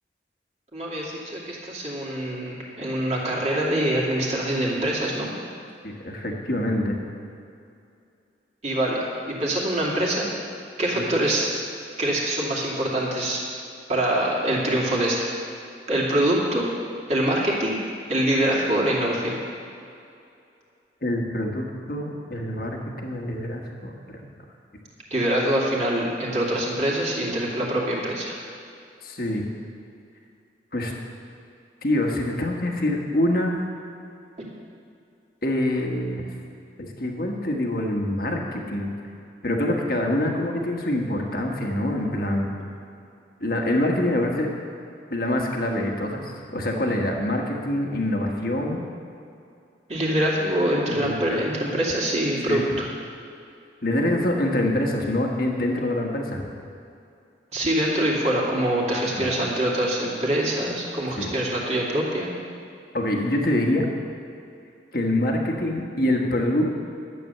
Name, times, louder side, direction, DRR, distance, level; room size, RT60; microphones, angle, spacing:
voice 1, 0.7-5.3 8.6-9.0 9.3-10.3 10.8-11.5 12.0-13.4 13.9-15.3 15.9-16.7 17.1-17.8 18.1-19.4 25.1-28.3 49.9-52.8 57.5-62.3, right 1 dB, 35° right, -4 dB, 2.5 m, -24 dB
voice 2, 5.8-7.0 10.9-11.0 21.0-24.2 29.0-29.5 30.7-30.9 31.8-33.6 35.4-36.2 37.0-38.9 39.4-42.5 43.4-44.5 45.1-48.8 50.9-51.8 52.5-52.7 53.8-56.4 59.1-59.3 61.2-61.3 62.9-63.9 64.9-66.7, left 1 dB, 55° left, 1 dB, 1.5 m, -25 dB
12.0 x 8.7 x 6.8 m, 2.5 s
head